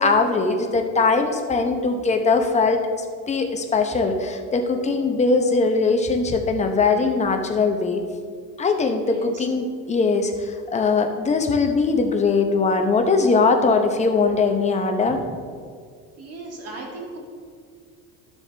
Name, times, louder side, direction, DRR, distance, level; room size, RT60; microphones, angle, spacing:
voice 1, 0.0-8.0 8.6-15.2, left 4 dB, 20° left, 4 dB, 0.8 m, -21 dB
voice 2, 9.1-9.4 16.2-17.2, right 2 dB, 50° right, -1 dB, 2.2 m, -37 dB
12.0 x 7.0 x 3.4 m, 2.1 s
cardioid pair, 145°, 32 cm